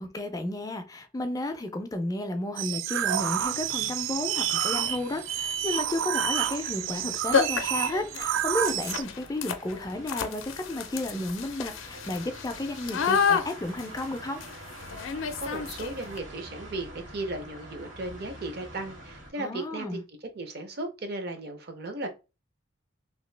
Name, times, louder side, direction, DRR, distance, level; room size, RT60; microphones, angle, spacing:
voice 1, 0.0-14.4 19.4-20.0, left 1 dB, 20° left, 0.3 m, -33 dB
sound 1, 2.6-9.0, right 10 dB, 90° right, 0.3 m, -29 dB
sound 2, 3.0-19.3, right 1 dB, 70° right, 1.6 m, -47 dB
sound 3, 3.9-4.0 4.5-4.9 6.6-6.7 7.0-7.1 7.3-16.2, left 6 dB, 80° left, 0.4 m, -31 dB
voice 2, 15.4-20.0 20.3-22.1, right 2 dB, 50° right, 0.6 m, -36 dB
2.9 x 2.6 x 3.2 m
head